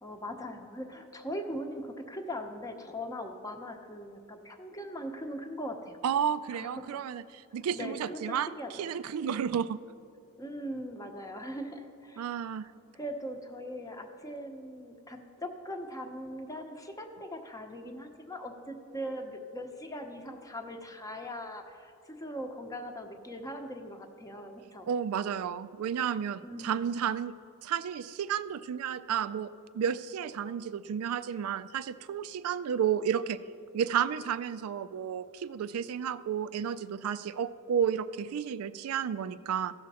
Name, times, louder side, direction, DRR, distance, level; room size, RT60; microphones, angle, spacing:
voice 1, 0.0-6.0 6.5-7.0 7.7-8.9 10.4-12.3 12.9-24.9 26.4-27.0, equal, 15° left, 5 dB, 0.8 m, -40 dB
voice 2, 6.0-7.2 7.5-9.8 12.2-12.7 24.9-27.3 27.6-33.4 33.7-39.7, right 8 dB, 80° right, 13 dB, 0.3 m, -32 dB
15.0 x 6.3 x 4.2 m, 2.5 s
head